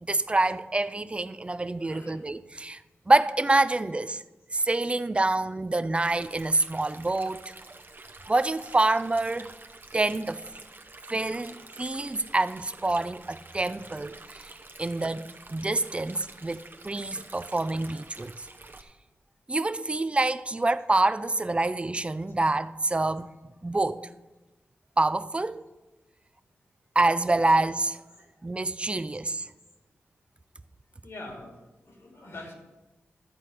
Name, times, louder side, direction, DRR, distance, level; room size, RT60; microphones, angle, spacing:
voice 1, 0.0-2.8 3.1-4.2 4.5-7.5 8.3-9.5 9.9-10.4 11.1-14.5 14.8-18.3 19.5-23.3 23.6-24.1 25.0-25.6 27.0-28.0 28.4-29.5, right 2 dB, 25° right, 0.5 m, -26 dB
voice 2, 1.8-2.2 20.5-20.6 31.0-31.6 31.8-32.5, left 2 dB, 65° left, 2.4 m, -44 dB
Stream, 6.2-18.8, right 3 dB, 45° right, 0.9 m, -48 dB
12.0 x 4.2 x 7.7 m
cardioid pair, 60°, 5 cm